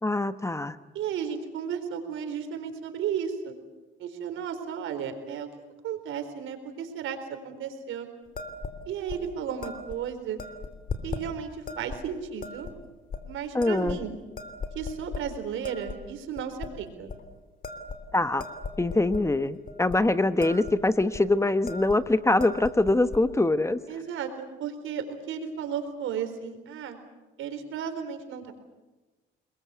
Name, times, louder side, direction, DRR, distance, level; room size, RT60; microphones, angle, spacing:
voice 1, 0.0-0.8 13.5-14.0 18.1-18.4 18.8-23.8, left 2 dB, 15° left, 12 dB, 1.0 m, -24 dB
voice 2, 0.9-3.5 4.0-5.5 5.8-7.2 7.4-8.1 8.9-10.4 11.0-12.7 13.2-14.2 14.7-17.1 23.9-27.0 27.4-28.5, right 8 dB, 85° right, 7 dB, 4.1 m, -34 dB
sound 1, 8.4-8.8 9.1-9.2 9.6-10.0 10.4-11.2 11.7-12.0 12.4-12.7 13.1-13.2 13.6-14.1 14.4-15.3 15.6-16.0 16.4-16.7 17.1-17.2 17.6-19.2 19.7-20.0 20.2-20.7 21.0-21.2 21.7-22.0 22.3-23.2, left 4 dB, 45° left, 3.2 m, -37 dB
28.0 x 21.5 x 8.3 m, 1.2 s
cardioid pair, 90°, 20 cm